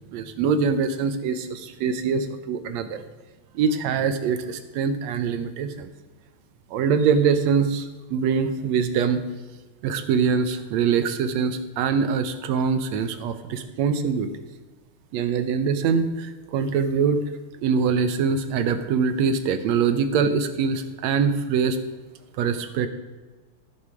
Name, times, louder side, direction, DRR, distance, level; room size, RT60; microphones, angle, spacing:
voice 1, 0.1-3.0 3.6-5.9 6.7-9.2 9.8-14.3 15.1-17.2 17.6-21.8 22.4-22.9, right 6 dB, 70° right, 9 dB, 1.9 m, -23 dB
14.5 x 7.1 x 4.8 m, 1.2 s
omnidirectional pair, 3.5 m